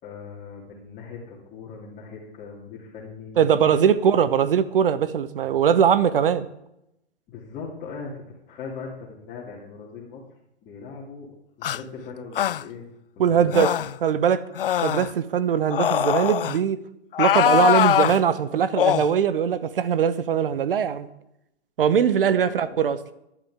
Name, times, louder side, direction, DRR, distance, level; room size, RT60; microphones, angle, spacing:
voice 1, 0.0-3.8 7.3-10.2 10.6-11.3 11.6-12.9 13.2-13.5 22.2-22.8, left 5 dB, 25° left, -5 dB, 2.7 m, -40 dB
voice 2, 3.4-6.5 13.2-13.7 14.0-14.4 14.8-16.8 17.2-21.1 21.8-23.0, right 8 dB, 55° right, 14 dB, 1.1 m, -21 dB
sound 1, 11.6-11.8 12.3-12.6 13.5-14.0 14.5-15.1 15.7-16.6 17.1-18.2 18.8-19.1, left 11 dB, 55° left, 0.4 m, -22 dB
21.0 x 11.0 x 3.6 m, 0.83 s
figure-of-eight pair, 120°, 33 cm